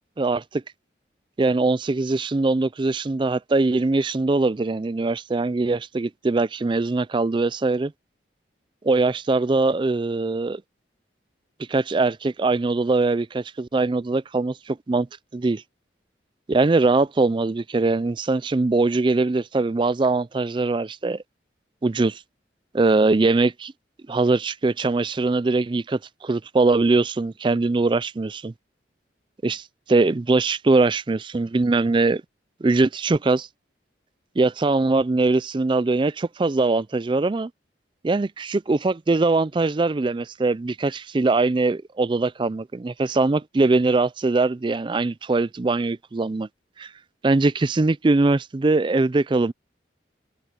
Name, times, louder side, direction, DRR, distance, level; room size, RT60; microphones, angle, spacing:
voice 1, 0.2-0.6 1.4-7.9 8.8-10.6 11.7-15.1 15.3-15.6 16.5-21.2 21.8-22.2 22.7-23.7 24.1-28.5 29.4-32.2 32.6-33.5 34.4-37.5 38.0-46.5 46.8-46.9 47.2-49.5, right 3 dB, 25° right, 0.4 m, -22 dB
head